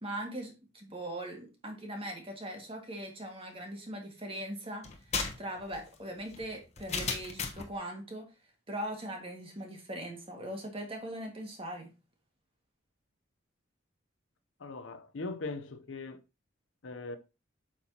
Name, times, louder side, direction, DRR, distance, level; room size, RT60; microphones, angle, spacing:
voice 1, 0.0-4.9 5.4-8.3 8.7-11.9, right 1 dB, 30° right, 1.8 m, -40 dB
sound 1, 4.8-7.7, left 5 dB, 35° left, 1.1 m, -36 dB
voice 2, 14.6-16.2 16.8-17.2, left 3 dB, 75° left, 0.7 m, -40 dB
8.3 x 6.1 x 2.8 m
head